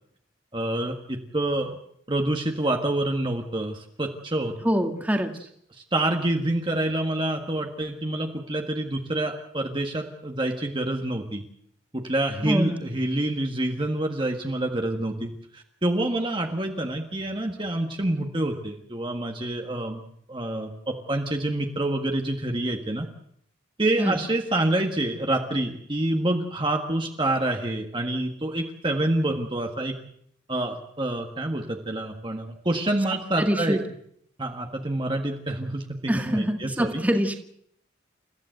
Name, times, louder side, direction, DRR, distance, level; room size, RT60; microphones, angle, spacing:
voice 1, 0.5-1.8 2.1-4.5 5.7-11.4 11.9-23.1 23.8-30.0 30.5-33.8 34.4-37.0, right 1 dB, 25° right, 3 dB, 1.6 m, -27 dB
voice 2, 4.6-5.3 12.4-12.8 24.0-24.2 33.4-33.8 36.1-37.4, equal, 10° right, 4 dB, 2.0 m, -24 dB
30.0 x 15.0 x 7.9 m, 0.71 s
head